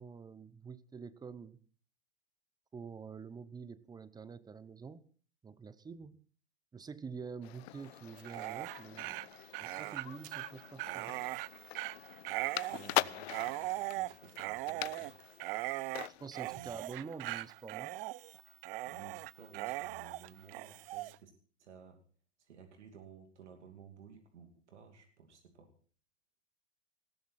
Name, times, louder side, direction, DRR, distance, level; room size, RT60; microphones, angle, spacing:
voice 1, 0.0-1.6 2.7-5.0 5.4-6.2 6.7-9.2 9.6-11.1 16.2-18.0, right 5 dB, 10° right, 17 dB, 0.8 m, -47 dB
sound 1, 7.4-16.3, left 16 dB, 65° left, 0.7 m, -42 dB
Dog, 8.1-21.2, right 18 dB, 55° right, 0.6 m, -40 dB
voice 2, 12.7-15.1 16.5-16.7 18.8-21.3 21.6-22.0 22.4-25.7, right 6 dB, 80° right, 5 dB, 2.7 m, -55 dB
19.0 x 14.5 x 4.2 m, 0.42 s
hypercardioid pair, 120°, 34 cm